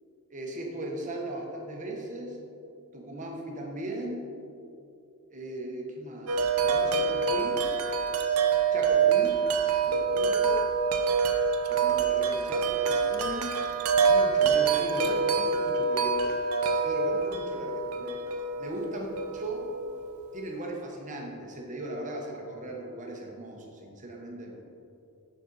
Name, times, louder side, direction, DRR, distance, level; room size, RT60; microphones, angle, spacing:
voice 1, 0.3-2.4 2.9-4.2 5.3-7.6 8.7-9.4 9.8-10.5 11.7-13.5 14.1-16.3 16.8-18.2 18.6-19.1 19.3-19.7 20.3-24.6, right 1 dB, 35° right, 0 dB, 1.0 m, -38 dB
Wind chime, 6.3-20.2, right 5 dB, 80° right, 0.6 m, -26 dB
6.7 x 6.6 x 3.9 m, 2.6 s
head